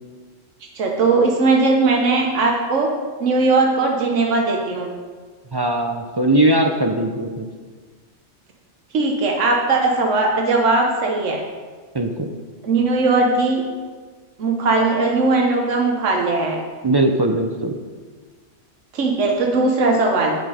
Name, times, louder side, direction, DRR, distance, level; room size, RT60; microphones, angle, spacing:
voice 1, 0.8-2.9 3.2-4.9 8.9-11.4 12.6-13.6 14.4-16.6 18.9-20.3, right 3 dB, 80° right, 0 dB, 1.3 m, -18 dB
voice 2, 5.5-7.4 11.9-12.3 16.8-17.7, right 1 dB, 35° right, 3 dB, 0.4 m, -19 dB
7.8 x 7.7 x 4.9 m, 1.5 s
omnidirectional pair, 1.3 m